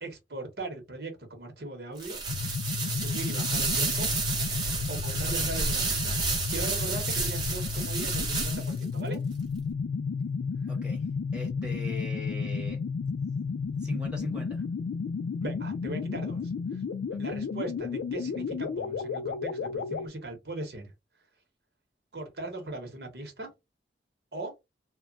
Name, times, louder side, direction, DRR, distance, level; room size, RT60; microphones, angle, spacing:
voice 1, 0.0-2.2 2.9-4.1 4.9-9.2 15.4-16.8 17.2-20.8 22.1-23.5 24.3-24.5, right 2 dB, 65° right, 0.9 m, -39 dB
sound 1, 2.0-8.8, right 4 dB, 25° right, 0.7 m, -31 dB
sound 2, 2.3-20.1, left 5 dB, 85° left, 0.3 m, -32 dB
voice 2, 10.7-11.1 11.3-12.8 13.8-14.6 17.1-17.4, left 1 dB, 5° right, 1.0 m, -39 dB
2.2 x 2.1 x 3.8 m
head